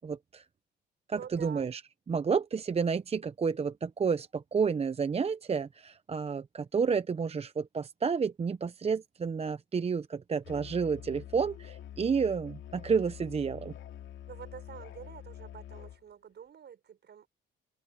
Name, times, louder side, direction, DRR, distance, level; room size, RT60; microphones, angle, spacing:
voice 1, 0.0-0.4 1.1-1.8 2.1-13.7, right 5 dB, 30° right, 0.7 m, -30 dB
voice 2, 1.1-1.7 14.3-17.3, right 8 dB, 60° right, 6.5 m, -47 dB
Musical instrument, 10.4-16.0, left 11 dB, 75° left, 2.6 m, -46 dB
cardioid pair, 90°, 20 cm